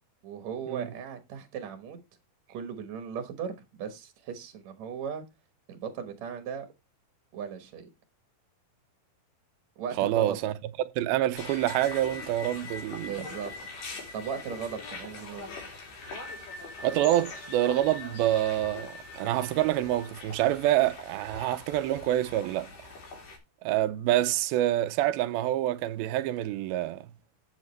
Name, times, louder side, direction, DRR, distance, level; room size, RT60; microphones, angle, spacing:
voice 1, 0.2-2.0 2.5-5.2 5.7-6.7 7.3-7.9 9.8-10.4 13.0-13.7 14.1-15.5, right 7 dB, 65° right, 2.0 m, -37 dB
voice 2, 10.0-10.5 10.8-13.2 16.8-22.7 23.6-27.1, right 13 dB, 80° right, 2.4 m, -27 dB
sound 1, 11.3-23.4, left 3 dB, 80° left, 5.1 m, -42 dB
9.7 x 8.5 x 3.2 m
omnidirectional pair, 4.5 m